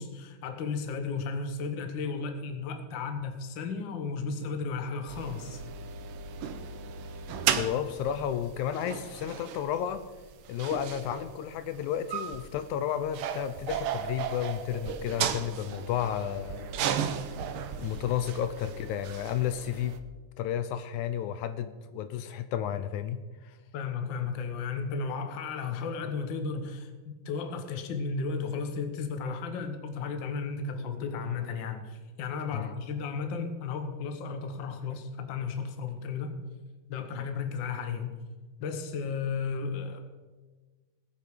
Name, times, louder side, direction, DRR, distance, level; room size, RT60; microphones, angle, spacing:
voice 1, 0.0-5.6 23.7-36.3 36.9-38.2 38.6-40.0, left 5 dB, 50° left, 6 dB, 1.5 m, -34 dB
sound 1, 5.1-20.0, right 8 dB, 90° right, 1.2 m, -35 dB
voice 2, 7.6-10.0 10.5-16.7 17.8-20.0 20.4-23.5 32.5-32.7, left 10 dB, 80° left, 11 dB, 2.0 m, -32 dB
19.5 x 8.4 x 5.3 m, 1.3 s
omnidirectional pair, 3.6 m